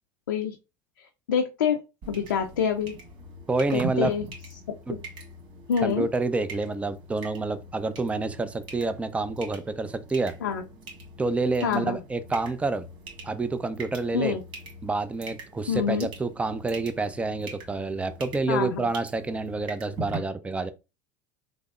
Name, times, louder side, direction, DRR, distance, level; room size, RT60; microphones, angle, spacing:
voice 1, 1.0-1.8 2.1-3.0 3.7-4.3 5.7-6.1 10.4-10.6 11.6-12.0 14.1-14.4 15.7-16.1 18.5-18.9, left 7 dB, 90° left, 0.5 m, -26 dB
sound 1, 2.0-20.2, right 2 dB, 50° right, 1.8 m, -42 dB
voice 2, 3.5-4.1 4.9-5.0 5.8-10.3 11.2-12.9 13.2-14.4 14.8-20.7, right 3 dB, 10° right, 0.4 m, -28 dB
3.4 x 2.0 x 3.5 m
hypercardioid pair, 90°, 11 cm